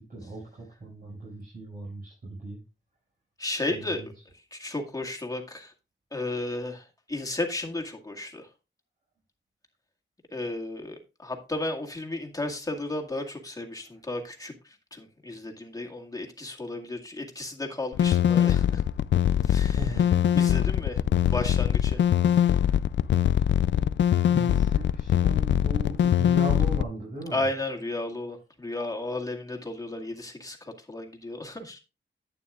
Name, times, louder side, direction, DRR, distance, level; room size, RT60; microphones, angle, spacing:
voice 1, 0.1-2.6 3.7-4.1 19.7-20.1 24.3-27.5, right 1 dB, 50° right, -4 dB, 5.9 m, -37 dB
voice 2, 3.4-4.0 4.5-5.7 6.1-8.5 10.3-18.8 19.4-21.0 21.3-22.0 27.3-31.8, left 2 dB, 20° left, 2 dB, 2.1 m, -34 dB
sound 1, 17.9-26.8, left 10 dB, 65° left, 0.4 m, -22 dB
11.5 x 9.1 x 2.4 m, 0.28 s
wide cardioid pair, 100°, 20 cm